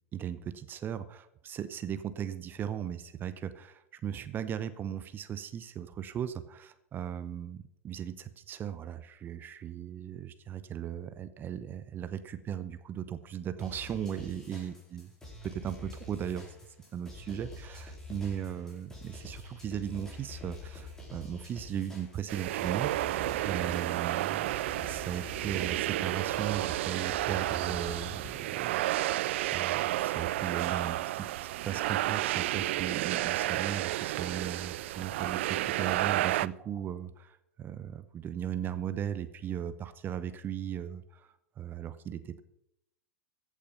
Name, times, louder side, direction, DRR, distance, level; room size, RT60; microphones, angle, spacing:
voice 1, 0.1-15.1 15.4-16.6 16.9-22.9 23.4-24.5 24.8-29.2 29.5-31.3 31.6-42.4, right 9 dB, 25° right, 13 dB, 0.8 m, -37 dB
sound 1, 13.6-28.4, left 2 dB, 5° left, 4.9 m, -46 dB
sound 2, 22.3-36.5, right 16 dB, 55° right, 0.4 m, -31 dB
15.0 x 8.4 x 5.6 m, 0.78 s
figure-of-eight pair, 95°, 8 cm